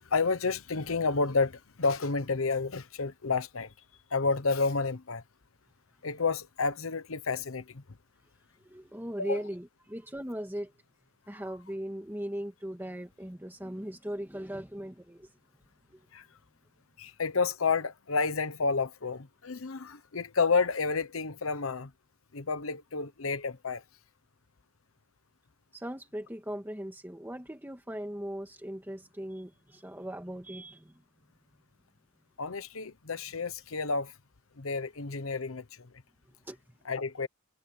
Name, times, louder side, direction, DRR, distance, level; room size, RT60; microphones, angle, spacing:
voice 1, 0.1-3.7 4.1-5.2 6.0-7.8 9.2-9.4 11.3-11.6 16.1-16.3 17.0-21.9 22.3-23.8 32.4-34.1 34.6-35.9 36.8-37.3, left 4 dB, 85° left, 1.0 m, -30 dB
voice 2, 8.7-10.7 11.3-15.3 25.7-30.9 36.5-36.6, equal, 10° right, 2.0 m, -38 dB
head